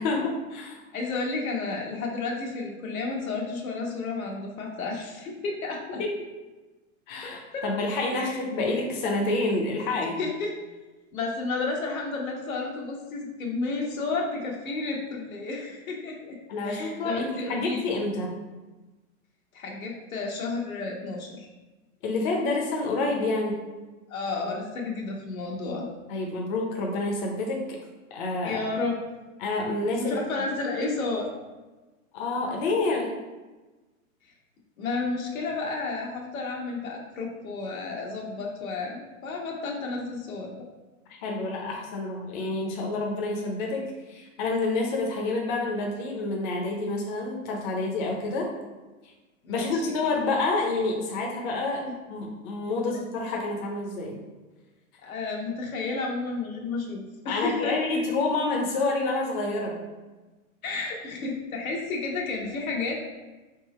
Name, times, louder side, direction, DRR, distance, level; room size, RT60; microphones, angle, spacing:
voice 1, 0.0-0.8 6.0-6.1 7.1-10.2 16.5-18.4 22.0-23.6 26.1-27.8 28.1-28.6 29.4-30.2 32.1-33.1 41.2-48.5 49.5-54.2 57.3-59.8, left 2 dB, 35° left, 0 dB, 0.7 m, -28 dB
voice 2, 0.9-6.0 7.2-7.6 8.1-8.4 10.2-10.5 11.1-16.4 16.7-17.9 19.5-21.5 24.1-25.9 28.4-29.0 30.0-31.3 34.8-40.6 49.4-50.0 55.0-58.0 60.6-63.0, left 3 dB, 80° left, -1 dB, 1.2 m, -32 dB
3.7 x 2.9 x 4.2 m, 1.2 s
hypercardioid pair, 140°, 41 cm